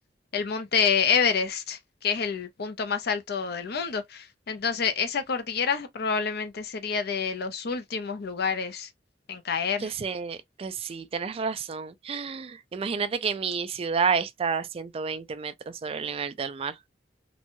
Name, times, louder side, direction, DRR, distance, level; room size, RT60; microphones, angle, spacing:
voice 1, 0.3-8.9 9.3-9.9, left 6 dB, 60° left, 0.6 m, -28 dB
voice 2, 9.8-16.7, right 5 dB, 30° right, 0.3 m, -30 dB
3.0 x 2.2 x 2.5 m
head